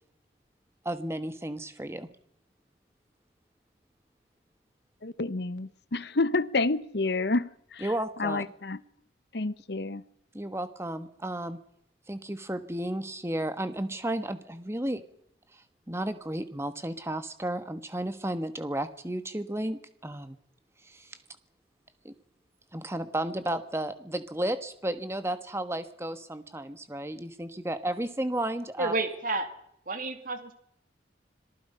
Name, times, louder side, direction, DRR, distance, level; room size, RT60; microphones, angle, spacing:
voice 1, 0.8-2.1 7.8-8.4 10.3-11.6 12.1-15.0 15.5-20.4 20.8-21.2 22.0-22.1 22.7-28.9, right 1 dB, 15° right, 1.4 m, -33 dB
voice 2, 5.0-7.9 8.2-8.8 9.3-10.0, left 3 dB, 60° left, 0.9 m, -29 dB
voice 3, 28.8-29.5 29.9-30.5, right 3 dB, 45° right, 2.6 m, -30 dB
26.0 x 19.0 x 5.6 m
head